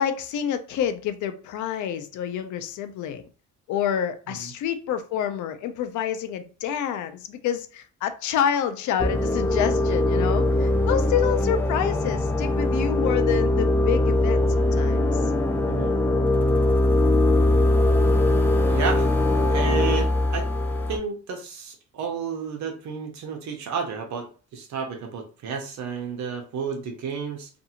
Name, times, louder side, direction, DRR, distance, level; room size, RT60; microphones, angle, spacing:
voice 1, 0.0-3.2 3.7-15.0, left 9 dB, 90° left, 0.5 m, -28 dB
sound 1, 9.0-21.0, left 2 dB, 10° left, 0.4 m, -21 dB
voice 2, 15.7-16.0 18.6-19.1 19.5-20.5 20.9-27.5, right 6 dB, 75° right, 0.7 m, -31 dB
2.5 x 2.4 x 2.8 m
cardioid pair, 125°, 29 cm